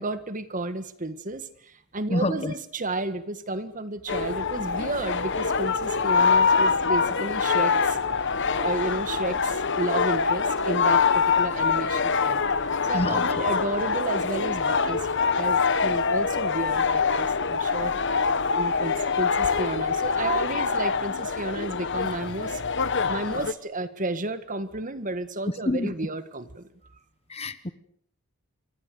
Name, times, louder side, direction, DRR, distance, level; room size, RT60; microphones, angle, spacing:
voice 1, 0.0-8.0 8.5-12.4 12.9-15.1 15.4-17.9 18.5-22.6 23.1-26.7, right 2 dB, 40° right, 1.7 m, -32 dB
voice 2, 2.1-2.5 12.9-13.3 25.6-25.9 27.3-27.7, left 1 dB, 30° left, 1.2 m, -27 dB
sound 1, 4.1-23.5, left 5 dB, 60° left, 1.3 m, -24 dB
28.5 x 24.5 x 6.9 m
head